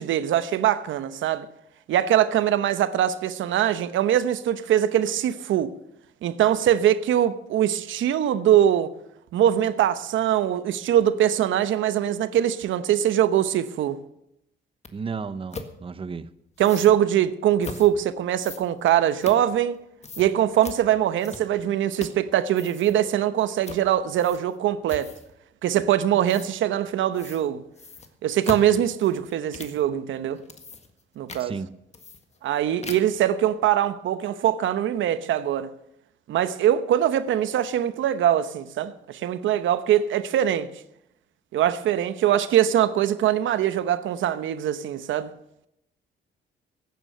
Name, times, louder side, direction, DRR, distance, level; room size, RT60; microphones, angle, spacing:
voice 1, 0.0-1.5 1.9-5.7 6.2-8.9 9.3-14.0 16.6-19.8 20.2-25.1 25.6-27.6 28.2-30.4 31.2-31.5 32.4-35.7 36.3-40.7 41.5-45.3, right 11 dB, 75° right, 0.9 m, -22 dB
sound 1, 14.8-14.9 15.5-15.7 16.6-16.9 17.6-17.9 18.4-19.8 20.0-20.3 20.6-20.8 21.2-21.6 21.9-22.3 22.5-23.0 23.6-23.8 24.2-24.6 24.9-25.3 26.3-26.5 27.1-27.4 27.8-29.8 30.3-31.0 31.3-31.5 31.9-32.5 32.8-33.2, left 4 dB, 35° left, 1.7 m, -39 dB
voice 2, 14.9-16.3 31.4-31.7, right 5 dB, 25° right, 0.7 m, -33 dB
16.0 x 9.3 x 6.8 m
cardioid pair, 90°, 20 cm